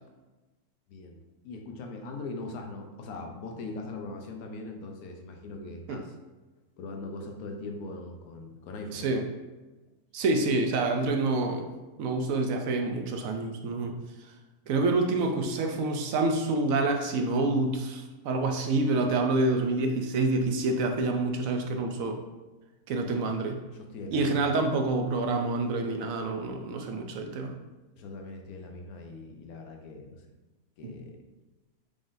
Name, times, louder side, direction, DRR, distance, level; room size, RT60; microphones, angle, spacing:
voice 1, 0.9-6.1 6.8-9.1 15.2-15.3 23.0-23.2 23.7-24.5 28.0-30.2 30.8-31.2, left 2 dB, 80° left, 3 dB, 1.2 m, -41 dB
voice 2, 8.9-9.2 10.1-11.7 12.0-13.9 14.7-22.2 22.9-23.6 24.1-27.5 30.8-30.9, right 3 dB, 70° right, 4 dB, 0.9 m, -27 dB
5.0 x 3.6 x 2.6 m, 1.2 s
omnidirectional pair, 1.6 m